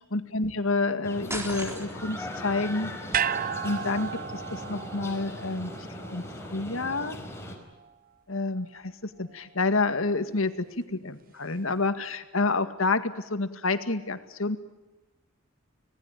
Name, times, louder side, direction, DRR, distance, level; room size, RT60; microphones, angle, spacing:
voice 1, 0.1-2.9 3.6-5.7 6.1-6.2 6.5-7.2 8.3-8.9 9.2-10.5 10.8-14.6, left 3 dB, 80° left, 10 dB, 2.0 m, -28 dB
sound 1, 1.0-7.6, left 1 dB, 15° left, 4.9 m, -39 dB
sound 2, 1.3-2.2, right 1 dB, 15° right, 3.9 m, -36 dB
sound 3, 3.1-7.5 7.8-7.9, right 8 dB, 45° right, 0.8 m, -34 dB
26.0 x 19.0 x 9.1 m, 1.1 s
head